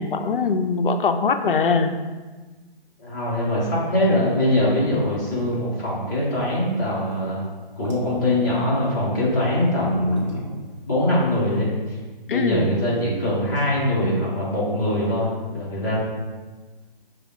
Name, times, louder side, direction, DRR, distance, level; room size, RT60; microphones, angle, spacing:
voice 1, 0.0-1.9 12.3-12.8, left 4 dB, 65° left, 7 dB, 0.5 m, -22 dB
voice 2, 3.0-7.4 7.8-10.5 10.8-11.7 12.3-16.0, left 1 dB, 20° left, -7 dB, 0.8 m, -22 dB
sound 1, 5.3-11.6, right 1 dB, 30° right, 0.7 m, -37 dB
5.1 x 2.3 x 3.5 m, 1.3 s
hypercardioid pair, 165°, 29 cm